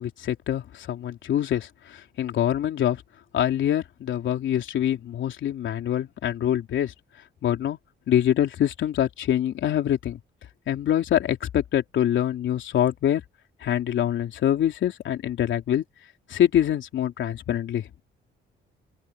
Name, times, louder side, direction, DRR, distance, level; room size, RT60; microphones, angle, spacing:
voice 1, 0.0-3.0 3.3-6.9 7.4-7.8 8.1-10.2 10.7-13.2 13.6-15.8 16.3-17.9, left 10 dB, 70° left, 3.5 m, -25 dB
open air
cardioid pair, 90°, 20 cm